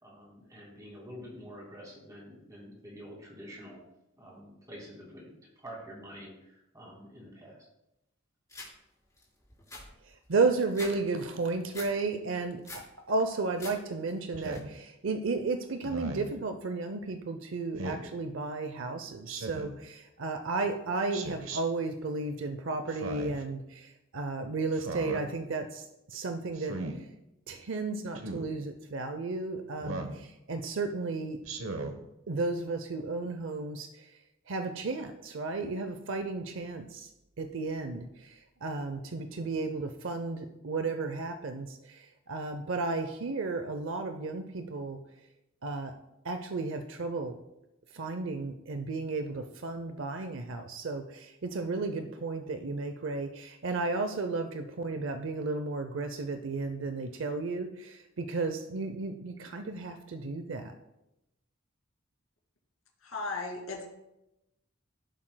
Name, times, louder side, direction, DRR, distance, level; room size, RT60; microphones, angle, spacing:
voice 1, 0.0-3.8 4.2-5.3 5.6-7.7, equal, 15° right, -5 dB, 3.5 m, -47 dB
sound 1, 8.5-8.7 9.2-9.3 9.5-10.9 11.3-11.9 12.3-12.9 13.3-13.7 14.1-14.6, left 2 dB, 15° left, 3.7 m, -44 dB
voice 2, 10.0-27.1 27.5-31.4 32.3-34.1 34.5-37.1 37.4-45.0 45.6-45.9 46.2-47.4 47.9-60.7, right 3 dB, 65° right, 7 dB, 0.6 m, -33 dB
Speech synthesizer, 14.4-14.7 15.8-16.3 17.8-18.1 19.3-19.8 21.1-21.6 22.9-23.4 24.7-25.2 26.6-27.0 28.2-28.5 29.8-30.2 31.4-32.0, right 2 dB, 85° right, 1.0 m, -37 dB
voice 3, 63.0-63.8, left 3 dB, 85° left, -1 dB, 2.3 m, -36 dB
15.0 x 7.4 x 2.2 m, 0.90 s
head